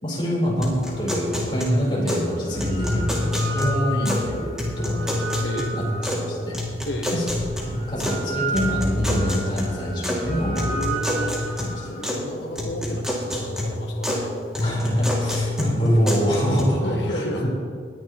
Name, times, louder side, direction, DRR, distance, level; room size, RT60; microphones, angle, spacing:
voice 1, 0.0-5.1 5.7-5.8 6.1-6.6 7.1-7.2 7.6-10.6 11.6-11.9 14.6-17.5, equal, 25° left, -5 dB, 3.7 m, -25 dB
sound 1, 0.6-2.3 2.6-4.3 4.6-6.3 6.5-8.2 8.6-10.2 10.6-12.2 12.6-14.2 14.5-16.6, left 1 dB, 5° right, 2.2 m, -27 dB
sound 2, 1.2-1.3 2.3-6.5 7.3-12.0, right 2 dB, 50° right, 1.9 m, -32 dB
voice 2, 5.4-5.8 6.9-7.3 10.3-11.4 11.9-14.3 16.8-17.5, equal, 80° left, 1 dB, 1.2 m, -32 dB
20.0 x 10.5 x 3.0 m, 2.1 s
head